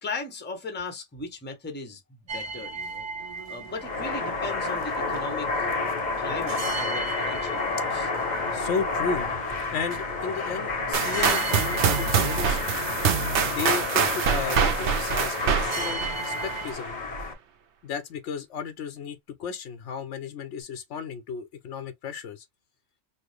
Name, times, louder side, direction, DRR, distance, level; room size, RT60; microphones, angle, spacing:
voice 1, 0.0-2.0 2.3-3.1 3.5-5.7 6.2-8.1, left 3 dB, 10° left, 0.6 m, -37 dB
sound 1, 2.3-16.7, right 4 dB, 45° right, 0.5 m, -38 dB
sound 2, 3.7-17.3, left 3 dB, 40° left, 0.8 m, -30 dB
voice 2, 8.5-9.3 9.7-12.6 13.4-17.0 17.8-22.5, left 6 dB, 70° left, 0.8 m, -34 dB
sound 3, 10.9-16.8, right 7 dB, 65° right, 0.9 m, -25 dB
4.2 x 2.0 x 3.1 m
omnidirectional pair, 1.3 m